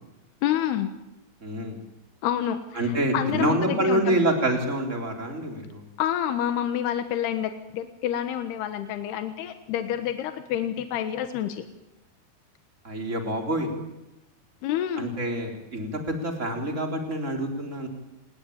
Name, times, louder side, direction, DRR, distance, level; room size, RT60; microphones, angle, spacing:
voice 1, 0.4-1.0 2.2-4.2 6.0-11.7 14.6-15.1, left 10 dB, 85° left, 8 dB, 3.4 m, -28 dB
voice 2, 1.4-1.8 2.8-5.8 12.8-13.8 15.0-17.9, right 1 dB, 20° right, 3 dB, 3.9 m, -27 dB
27.5 x 21.0 x 8.9 m, 0.94 s
omnidirectional pair, 4.6 m